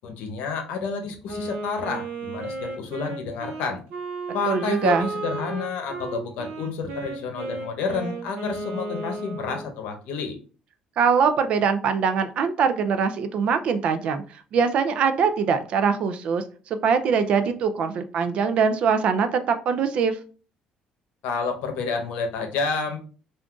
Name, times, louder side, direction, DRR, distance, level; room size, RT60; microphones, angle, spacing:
voice 1, 0.0-3.8 4.3-10.4 21.2-23.0, left 5 dB, 80° left, 5 dB, 0.8 m, -29 dB
Wind instrument woodwind instrument, 1.3-9.7, right 3 dB, 90° right, 0.8 m, -34 dB
voice 2, 4.5-5.1 11.0-14.2 14.5-16.4 16.8-20.2, right 6 dB, 50° right, 9 dB, 0.4 m, -22 dB
2.5 x 2.3 x 3.7 m, 0.38 s
cardioid pair, 160°, 2 cm